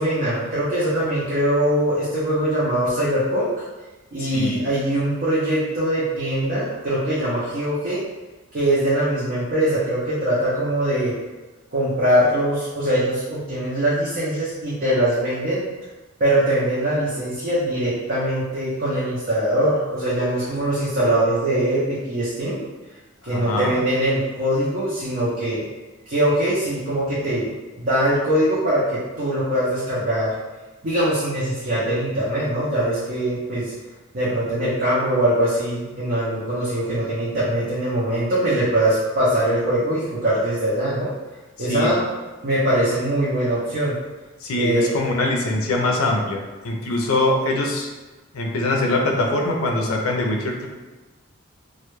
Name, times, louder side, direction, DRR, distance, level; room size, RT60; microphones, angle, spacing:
voice 1, 0.0-3.5 4.1-8.0 8.5-11.2 11.7-15.7 16.2-22.6 23.2-25.6 26.1-27.5 27.8-30.3 30.8-33.7 34.1-41.1 41.6-42.0 42.4-43.9 44.5-45.0, right 1 dB, 45° right, -9 dB, 0.5 m, -22 dB
voice 2, 4.2-4.6 23.3-23.7 41.6-41.9 44.4-47.9 48.3-50.7, left 2 dB, 80° left, 1 dB, 0.4 m, -23 dB
2.2 x 2.1 x 3.0 m, 1.2 s
head